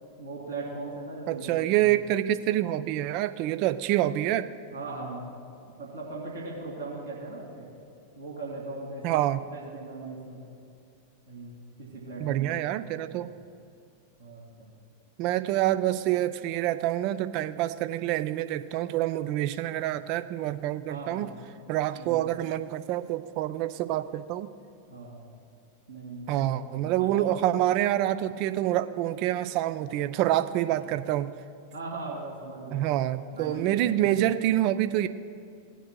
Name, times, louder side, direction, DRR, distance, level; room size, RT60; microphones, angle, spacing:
voice 1, 0.2-1.9 4.7-5.3 5.8-7.7 8.2-9.3 9.5-10.4 11.3-12.5 14.2-14.7 20.9-21.3 21.9-22.2 24.9-25.3 25.9-27.3 31.7-32.9 33.4-34.3, right 3 dB, 75° right, -4 dB, 2.5 m, -39 dB
voice 2, 1.3-4.5 9.0-9.4 12.2-13.3 15.2-21.3 21.7-24.5 26.3-31.3 32.7-35.1, right 13 dB, 45° right, 13 dB, 0.4 m, -27 dB
18.0 x 9.1 x 2.3 m, 2.4 s
figure-of-eight pair, 90°, 0 cm